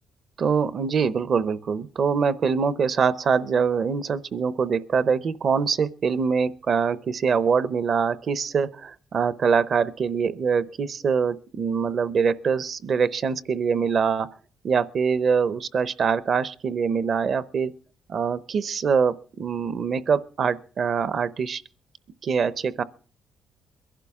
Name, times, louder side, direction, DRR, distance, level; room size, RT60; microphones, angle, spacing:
voice 1, 0.4-14.3 14.6-17.7 18.1-21.6 22.2-22.8, right 6 dB, 55° right, 0.7 m, -24 dB
22.0 x 11.5 x 3.6 m
cardioid pair, 90°, 0 cm